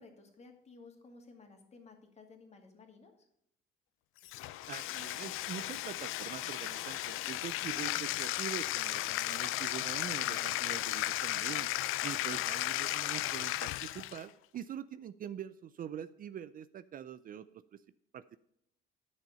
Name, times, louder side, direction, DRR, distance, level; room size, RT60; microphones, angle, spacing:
voice 1, 0.0-3.1 10.3-10.6 12.2-12.4, left 3 dB, 30° left, 3 dB, 2.2 m, -56 dB
Bathtub (filling or washing), 4.2-14.3, left 16 dB, 85° left, 0.5 m, -35 dB
voice 2, 4.7-11.7 12.0-17.8 18.1-18.4, right 9 dB, 45° right, 14 dB, 0.4 m, -44 dB
10.5 x 6.4 x 5.5 m, 0.73 s
cardioid pair, 125°, 21 cm